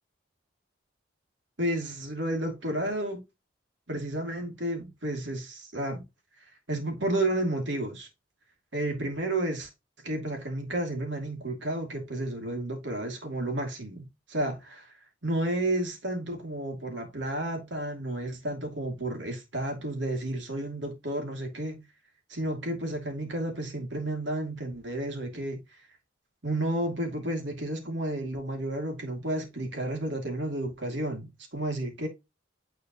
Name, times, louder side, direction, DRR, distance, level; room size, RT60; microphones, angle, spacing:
voice 1, 1.6-3.2 3.9-6.0 6.7-8.1 8.7-9.7 10.0-15.0 15.2-21.8 22.3-25.8 26.4-32.1, right 1 dB, 70° right, 2.5 m, -31 dB
9.5 x 4.3 x 3.0 m
head